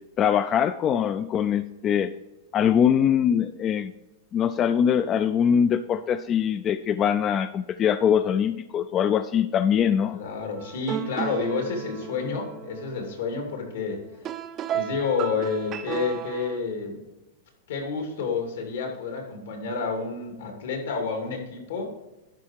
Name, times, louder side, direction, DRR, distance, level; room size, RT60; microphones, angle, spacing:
voice 1, 0.2-2.1 2.5-3.9 4.3-10.2, left 8 dB, 25° left, 11 dB, 0.3 m, -22 dB
voice 2, 10.1-14.0 14.7-17.0 17.7-21.9, left 4 dB, 80° left, 3 dB, 2.7 m, -29 dB
sound 1, 10.6-16.6, right 9 dB, 30° right, 0.5 m, -35 dB
11.5 x 4.9 x 4.6 m, 1.0 s
supercardioid pair, 145°, 0 cm